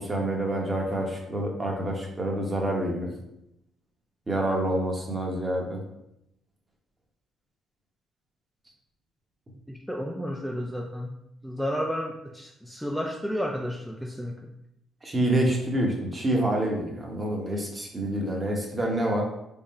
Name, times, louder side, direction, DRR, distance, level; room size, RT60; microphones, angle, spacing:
voice 1, 0.0-3.1 4.3-5.8 15.0-19.2, right 1 dB, 25° right, 0 dB, 0.9 m, -27 dB
voice 2, 9.7-11.1 11.4-14.4, equal, ahead, 0 dB, 0.3 m, -32 dB
3.6 x 2.1 x 4.1 m, 0.83 s
cardioid pair, 90°, 0 cm